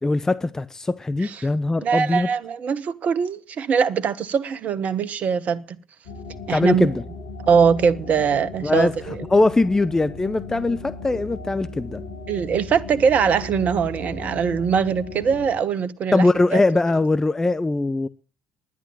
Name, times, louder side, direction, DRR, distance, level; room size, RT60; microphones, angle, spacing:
voice 1, 0.0-2.3 6.5-6.9 8.6-8.9 9.3-12.0 16.1-18.1, left 2 dB, 15° left, 0.7 m, -21 dB
voice 2, 1.8-5.6 6.5-6.9 7.5-9.2 12.3-16.3 16.5-16.6, right 6 dB, 45° right, 1.2 m, -22 dB
sound 1, 6.0-15.5, left 3 dB, 80° left, 3.1 m, -37 dB
11.0 x 10.0 x 9.1 m
hypercardioid pair, 60°, 3 cm